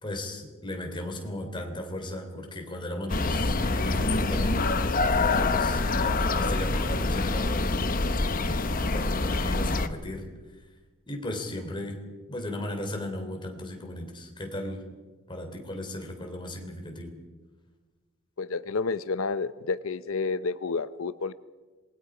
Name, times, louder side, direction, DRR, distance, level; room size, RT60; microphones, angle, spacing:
voice 1, 0.0-4.7 5.0-8.0 8.3-10.3 11.1-12.0 12.3-14.8 15.3-17.1, left 1 dB, 20° left, 3 dB, 3.3 m, -36 dB
sound 1, 3.1-9.9, left 3 dB, 40° left, 1.0 m, -26 dB
voice 2, 18.4-21.3, left 4 dB, 65° left, 15 dB, 0.6 m, -30 dB
27.0 x 21.5 x 5.0 m, 1.3 s
head